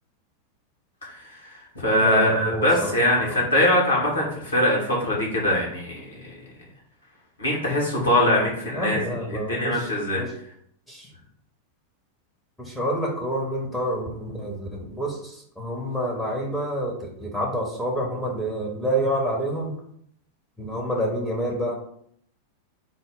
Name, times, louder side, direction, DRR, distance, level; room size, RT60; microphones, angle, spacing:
voice 1, 1.0-6.1 7.4-9.0 9.3-10.2, left 1 dB, 70° left, -4 dB, 1.3 m, -22 dB
voice 2, 2.0-3.4 8.7-9.8 10.2-10.3 10.9-11.1 12.6-14.7 14.9-19.7 20.6-21.7, equal, 5° left, -3 dB, 0.7 m, -28 dB
4.0 x 2.0 x 3.7 m, 0.66 s
figure-of-eight pair, 90°, 0 cm